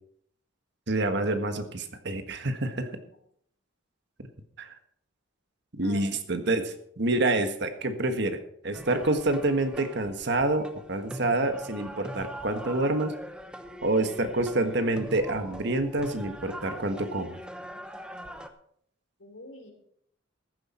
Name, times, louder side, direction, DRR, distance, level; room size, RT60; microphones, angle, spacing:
voice 1, 0.9-2.9 4.2-4.3 4.6-4.7 5.7-13.1 13.8-17.4, right 2 dB, 60° right, 7 dB, 1.5 m, -27 dB
sound 1, 8.7-18.5, right 1 dB, 5° right, 0.9 m, -42 dB
voice 2, 19.2-19.7, left 1 dB, 75° left, 2 dB, 3.6 m, -46 dB
14.5 x 11.0 x 4.4 m, 0.68 s
head